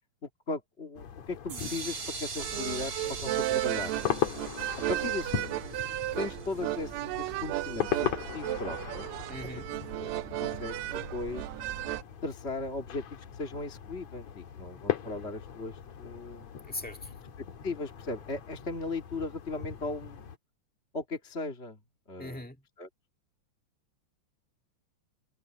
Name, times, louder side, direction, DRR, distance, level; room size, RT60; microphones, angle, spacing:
voice 1, 0.2-4.1 4.9-5.6 6.2-9.1 9.9-10.1 10.4-10.8 11.1-11.5 12.2-13.0 13.3-16.5 17.4-20.3 20.9-21.8 22.1-22.4 22.8-22.9, left 3 dB, 25° left, 1.9 m, -37 dB
sound 1, 1.0-20.4, left 9 dB, 65° left, 2.8 m, -39 dB
sound 2, 1.5-7.3, right 5 dB, 55° right, 4.3 m, -42 dB
sound 3, 2.4-12.0, right 15 dB, 80° right, 1.7 m, -34 dB
voice 2, 9.3-9.7 16.7-17.1 22.2-22.6, left 2 dB, 5° left, 1.3 m, -40 dB
omnidirectional pair, 3.4 m